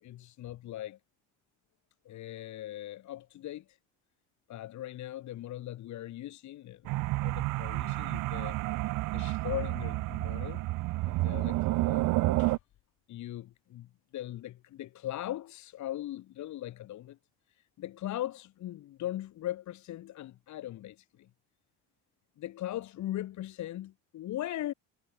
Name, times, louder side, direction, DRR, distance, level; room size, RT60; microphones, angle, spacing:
voice 1, 0.0-1.0 2.0-3.8 4.5-8.6 9.1-10.6 11.0-12.6 13.1-17.2 17.6-21.3 22.4-24.7, left 13 dB, 55° left, 0.9 m, -40 dB
sound 1, 6.9-12.6, right 20 dB, 65° right, 0.5 m, -30 dB
cardioid pair, 100°, 35 cm